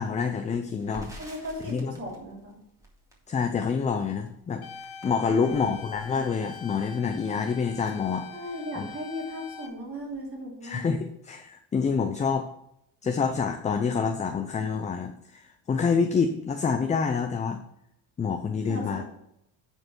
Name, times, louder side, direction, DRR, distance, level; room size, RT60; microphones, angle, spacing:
voice 1, 0.0-1.1 1.7-1.9 3.3-4.6 5.0-8.3 8.8-8.9 10.6-12.5 13.0-15.4 15.7-17.6 18.2-19.0, left 5 dB, 15° left, 6 dB, 0.4 m, -27 dB
Crackle, 0.8-8.9 9.2-9.3 9.6-10.4, right 1 dB, 5° right, 2.1 m, -50 dB
voice 2, 1.2-2.6 5.3-5.7 8.3-10.9 18.7-19.0, equal, 30° right, -3 dB, 3.2 m, -37 dB
sound 1, 4.6-9.7, left 5 dB, 50° left, 1.3 m, -43 dB
9.4 x 4.6 x 5.9 m, 0.77 s
cardioid pair, 135°, 47 cm